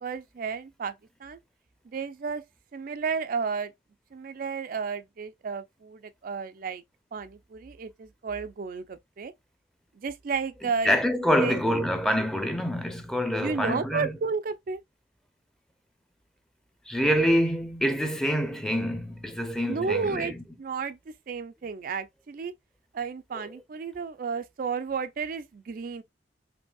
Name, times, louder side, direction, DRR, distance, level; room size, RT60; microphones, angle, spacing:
voice 1, 0.0-0.9 1.2-1.4 1.9-2.4 2.7-3.7 4.1-6.8 7.1-9.3 10.0-11.6 13.4-14.8 19.7-20.3 20.6-21.0 21.3-22.5 22.9-26.0, right 5 dB, 55° right, 0.4 m, -32 dB
voice 2, 10.6-14.1 16.9-20.3 23.3-23.4, equal, 5° left, 0.6 m, -26 dB
5.2 x 2.7 x 2.3 m
head